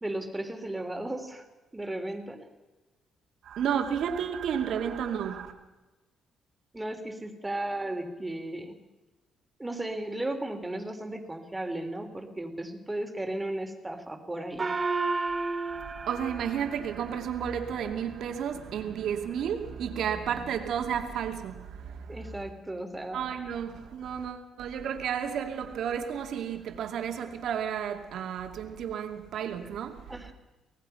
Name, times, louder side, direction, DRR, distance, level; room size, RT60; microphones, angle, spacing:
voice 1, 0.0-1.5 1.7-2.5 6.7-8.8 9.6-14.7 22.1-23.2 30.1-30.3, right 1 dB, 15° right, 3.3 m, -35 dB
voice 2, 3.4-5.5 15.6-22.4 23.1-30.1, right 8 dB, 75° right, 2.5 m, -32 dB
Gong, 14.6-17.5, right 3 dB, 30° right, 1.3 m, -32 dB
25.0 x 18.0 x 5.7 m
cardioid pair, 90°, 0 cm